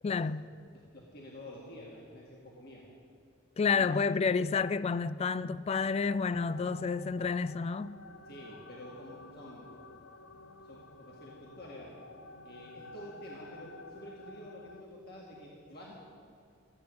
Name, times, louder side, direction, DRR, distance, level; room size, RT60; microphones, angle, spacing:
voice 1, 0.0-0.5 3.6-8.0, left 5 dB, 30° left, 0.3 m, -30 dB
voice 2, 0.7-2.8 3.7-4.0 8.2-9.7 10.6-11.9 12.4-16.0, equal, 55° left, 1.9 m, -49 dB
sound 1, 5.9-14.8, left 2 dB, 70° left, 0.7 m, -52 dB
14.5 x 7.7 x 8.6 m
head